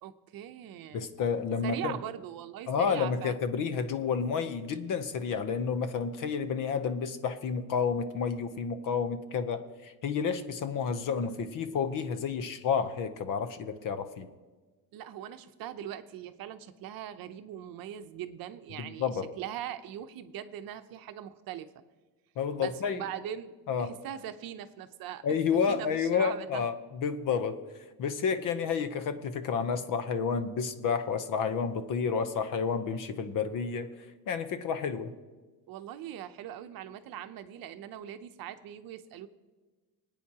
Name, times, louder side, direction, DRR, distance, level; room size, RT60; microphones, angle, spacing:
voice 1, 0.0-1.1 1.6-3.4 14.9-21.7 22.6-23.5 23.8-25.4 25.7-26.7 35.7-39.3, right 11 dB, 60° right, 10 dB, 0.8 m, -41 dB
voice 2, 0.9-2.0 2.7-14.3 18.7-19.3 22.4-23.1 23.7-23.9 25.2-27.6 28.0-33.9 34.3-35.1, left 6 dB, 50° left, 11 dB, 0.8 m, -30 dB
25.0 x 9.1 x 2.9 m, 1.3 s
cardioid pair, 175°, 40 cm